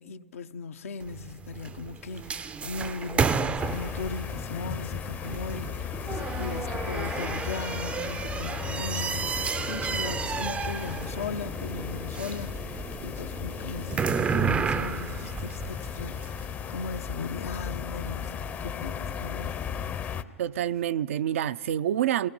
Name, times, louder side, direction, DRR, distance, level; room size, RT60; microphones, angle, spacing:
voice 1, 0.0-19.7, left 4 dB, 80° left, 0.8 m, -38 dB
sound 1, 1.0-16.4, right 6 dB, 15° right, 0.4 m, -32 dB
Applause, 1.4-19.1, right 1 dB, 90° right, 5.3 m, -57 dB
sound 2, 3.6-20.2, left 8 dB, 25° left, 0.6 m, -36 dB
voice 2, 20.4-22.3, right 11 dB, 70° right, 0.4 m, -27 dB
28.5 x 18.5 x 5.4 m
hypercardioid pair, 120°, 7 cm